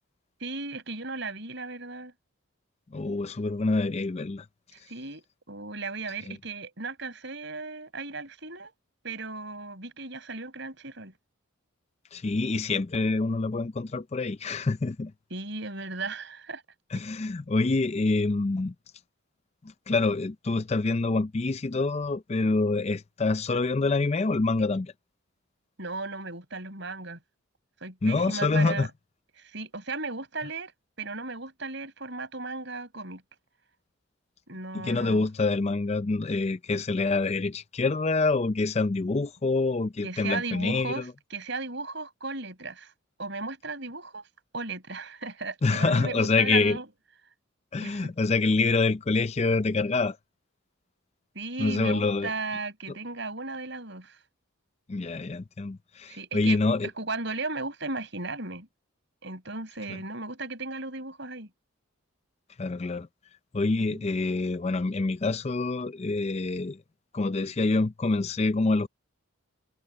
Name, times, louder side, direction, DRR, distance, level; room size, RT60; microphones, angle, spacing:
voice 1, 0.4-2.1 4.7-8.7 9.0-11.1 15.3-16.6 25.8-27.2 27.8-28.9 29.3-30.7 31.0-33.2 34.5-35.3 40.0-42.9 43.2-44.3 44.5-46.9 47.8-48.1 51.3-54.2 56.1-56.6 57.0-58.7 59.2-61.5 63.8-64.0, right 3 dB, 55° right, 6.3 m, -36 dB
voice 2, 2.9-4.5 6.3-6.4 12.1-15.1 16.9-18.7 19.9-24.9 28.0-28.9 34.8-41.0 45.6-46.8 47.7-50.2 51.6-52.3 54.9-56.9 62.6-63.1 63.5-66.8 67.1-68.9, left 3 dB, 30° left, 0.4 m, -26 dB
head